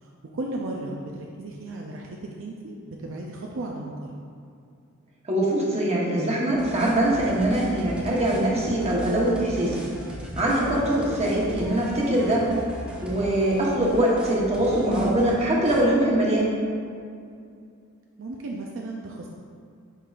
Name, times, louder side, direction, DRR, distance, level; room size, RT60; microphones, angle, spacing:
voice 1, 0.0-4.1 10.9-11.3 18.2-19.3, right 2 dB, 65° right, -1 dB, 0.5 m, -35 dB
voice 2, 5.2-9.9 10.4-12.5 13.0-16.6, right 1 dB, 30° right, -5 dB, 1.1 m, -23 dB
sound 1, 6.5-15.3 15.7-15.8, equal, 5° right, 0.6 m, -38 dB
10.0 x 3.8 x 2.4 m, 2.3 s
head